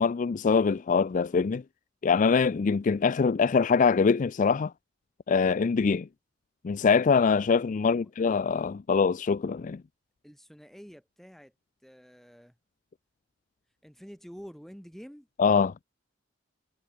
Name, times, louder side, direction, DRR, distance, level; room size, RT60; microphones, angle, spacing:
voice 1, 0.0-1.6 2.0-4.7 5.3-6.1 6.6-9.8 15.4-15.7, left 5 dB, 40° left, 0.4 m, -23 dB
voice 2, 10.2-11.5 11.8-12.5 13.8-15.3, equal, ahead, 7.1 m, -48 dB
head